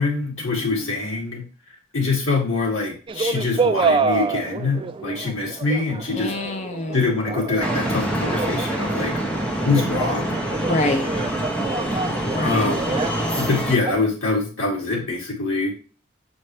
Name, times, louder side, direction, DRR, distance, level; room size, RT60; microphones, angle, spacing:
voice 1, 0.0-1.4 1.9-6.3 6.9-9.2 9.6-10.4 12.4-12.9 13.4-15.7, left 3 dB, 80° left, -1 dB, 2.6 m, -24 dB
voice 2, 0.5-0.9 6.1-7.1 10.6-11.1 12.2-12.7, left 2 dB, 35° left, 4 dB, 0.6 m, -26 dB
sound 1, 3.1-14.1, right 4 dB, 25° right, 0.3 m, -28 dB
sound 2, 7.6-13.8, right 1 dB, 5° left, 1.1 m, -25 dB
6.9 x 4.4 x 3.1 m, 0.36 s
head